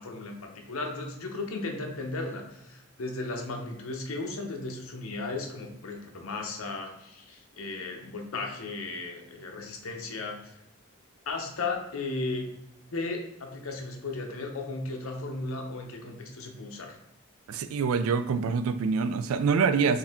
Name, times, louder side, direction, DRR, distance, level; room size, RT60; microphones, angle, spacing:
voice 1, 0.0-10.5 11.3-12.4 12.9-17.0, left 3 dB, 75° left, 2 dB, 0.7 m, -35 dB
voice 2, 17.5-20.0, right 5 dB, 75° right, 12 dB, 0.3 m, -25 dB
4.7 x 2.7 x 3.5 m, 0.84 s
head